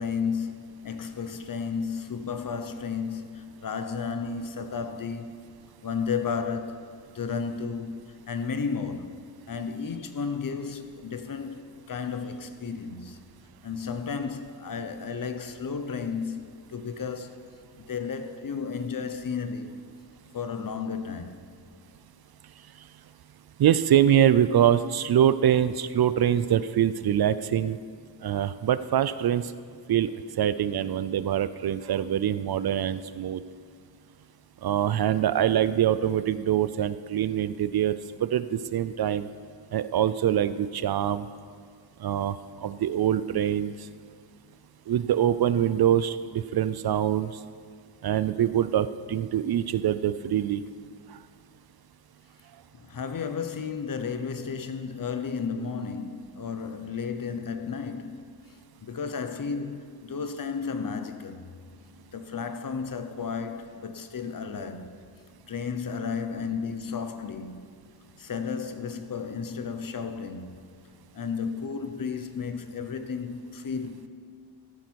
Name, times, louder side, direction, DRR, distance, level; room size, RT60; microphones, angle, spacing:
voice 1, 0.0-5.4 5.8-9.2 9.5-13.2 13.6-17.4 17.8-19.8 20.3-21.5 52.7-58.3 58.8-61.4 62.1-65.0 65.5-67.6 68.2-70.6 71.1-74.1, left 5 dB, 50° left, 0.8 m, -33 dB
voice 2, 23.6-27.8 28.2-29.5 29.9-30.1 30.4-33.4 34.6-39.3 39.7-41.3 42.0-43.7 44.9-47.3 48.0-50.6 51.1-51.2, right 10 dB, 60° right, 0.5 m, -24 dB
14.5 x 10.0 x 4.6 m
wide cardioid pair, 120°, 43 cm